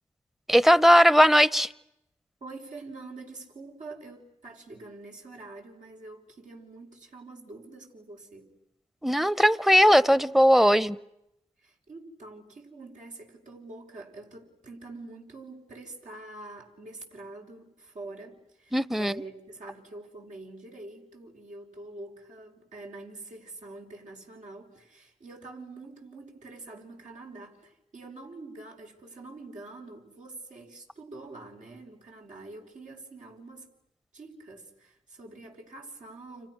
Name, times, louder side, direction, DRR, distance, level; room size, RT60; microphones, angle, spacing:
voice 1, 0.5-1.7 9.0-11.0 18.7-19.1, equal, ahead, 0.9 m, -19 dB
voice 2, 2.4-8.5 11.6-33.7 34.1-36.5, right 2 dB, 70° right, 5.4 m, -45 dB
30.0 x 28.5 x 6.3 m
cardioid pair, 50°, 13 cm